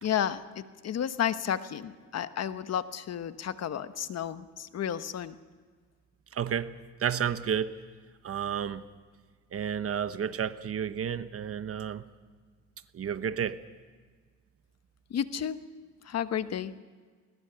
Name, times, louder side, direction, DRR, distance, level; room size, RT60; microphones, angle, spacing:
voice 1, 0.0-5.4 15.1-15.6 16.0-16.7, left 9 dB, 55° left, 1.1 m, -32 dB
voice 2, 6.3-6.7 7.0-7.8 8.2-8.8 9.5-12.0 12.9-13.6, right 8 dB, 50° right, 1.0 m, -31 dB
20.5 x 20.0 x 6.9 m
cardioid pair, 90°, 30 cm